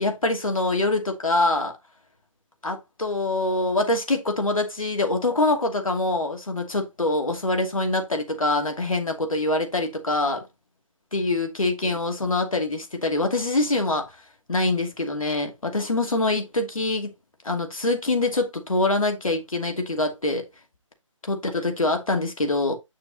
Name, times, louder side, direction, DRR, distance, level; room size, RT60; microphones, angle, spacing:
voice 1, 0.0-1.7 2.6-10.4 11.1-14.1 14.5-17.1 17.4-20.5 21.2-22.8, left 2 dB, 85° left, 2.7 m, -24 dB
8.3 x 6.6 x 2.9 m
figure-of-eight pair, 150°, 17 cm